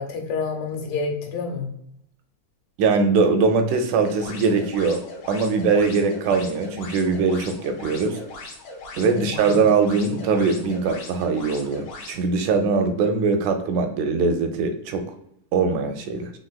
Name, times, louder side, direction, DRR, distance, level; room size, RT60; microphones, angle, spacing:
voice 1, 0.0-1.7 9.1-9.5, left 4 dB, 90° left, 2 dB, 2.5 m, -29 dB
voice 2, 2.8-8.2 9.0-15.0 15.5-16.3, right 4 dB, 80° right, 6 dB, 2.0 m, -21 dB
sound 1, 4.0-12.2, left 2 dB, 60° left, 1.8 m, -40 dB
5.0 x 3.8 x 2.3 m, 0.73 s
omnidirectional pair, 3.6 m